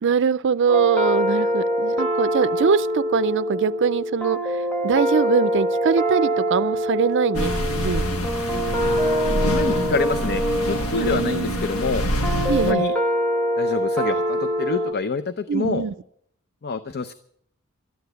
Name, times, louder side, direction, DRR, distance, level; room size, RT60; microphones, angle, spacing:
voice 1, 0.0-4.6 4.8-8.1 11.0-11.6 12.5-12.8 15.5-15.9, right 6 dB, 60° right, 0.5 m, -22 dB
sound 1, 0.7-14.9, equal, 5° left, 1.4 m, -24 dB
sound 2, 7.3-12.7, left 1 dB, 85° left, 1.4 m, -26 dB
voice 2, 9.4-12.1 12.6-12.9 13.6-15.8 16.6-17.1, left 4 dB, 50° left, 0.6 m, -27 dB
13.0 x 10.5 x 7.9 m
head